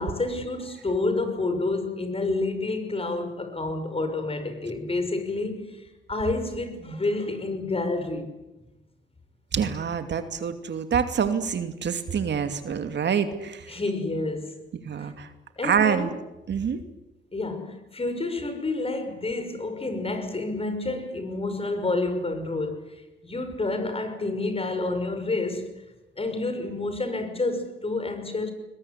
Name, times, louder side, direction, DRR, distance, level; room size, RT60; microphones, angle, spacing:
voice 1, 0.0-8.3 13.7-14.6 15.0-15.1 15.6-16.1 17.3-25.7 26.2-28.5, left 2 dB, 30° left, 5.9 m, -29 dB
voice 2, 9.5-13.7 14.8-15.3 15.6-16.1 16.5-16.8, right 7 dB, 60° right, 2.6 m, -26 dB
21.5 x 21.0 x 9.8 m
cardioid pair, 75°, 20 cm